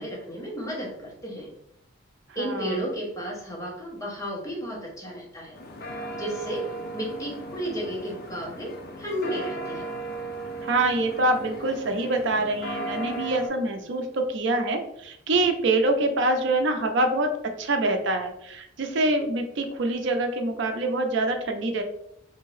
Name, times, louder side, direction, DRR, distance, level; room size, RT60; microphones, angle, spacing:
voice 1, 0.0-1.5 2.3-5.6 6.1-6.7 6.9-9.9, equal, 15° left, -2 dB, 0.8 m, -33 dB
voice 2, 2.4-2.8 10.6-17.3 17.6-21.8, right 2 dB, 65° right, 5 dB, 0.5 m, -25 dB
sound 1, 5.5-13.5, right 1 dB, 50° left, 0.5 m, -36 dB
3.5 x 2.7 x 3.1 m, 0.76 s
head